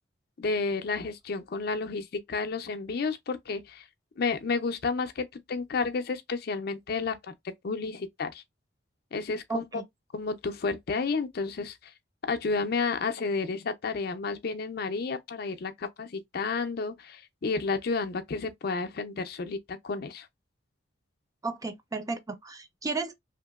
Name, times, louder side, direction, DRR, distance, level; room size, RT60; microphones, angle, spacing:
voice 1, 0.4-3.8 4.2-7.3 7.6-8.4 9.1-9.6 10.1-11.8 12.3-20.3, left 4 dB, 55° left, 0.5 m, -31 dB
voice 2, 9.5-9.8 21.4-23.1, right 3 dB, 20° right, 0.5 m, -34 dB
2.8 x 2.6 x 2.3 m
head